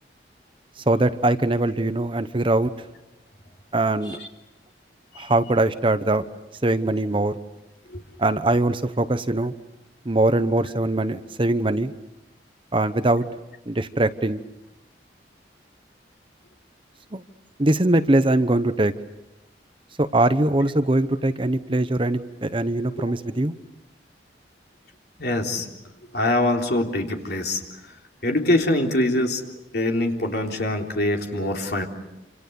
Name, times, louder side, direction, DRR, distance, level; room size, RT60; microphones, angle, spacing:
voice 1, 0.9-2.7 3.7-4.2 5.2-6.2 6.6-7.3 8.2-9.5 10.0-11.9 12.7-13.3 13.7-14.4 17.1-17.2 17.6-18.9 20.0-23.5, right 2 dB, 30° right, 11 dB, 0.9 m, -22 dB
voice 2, 25.2-25.7 26.1-27.6 28.2-29.4 29.7-31.8, left 1 dB, 60° left, 2 dB, 3.5 m, -23 dB
28.0 x 27.0 x 7.0 m, 0.97 s
head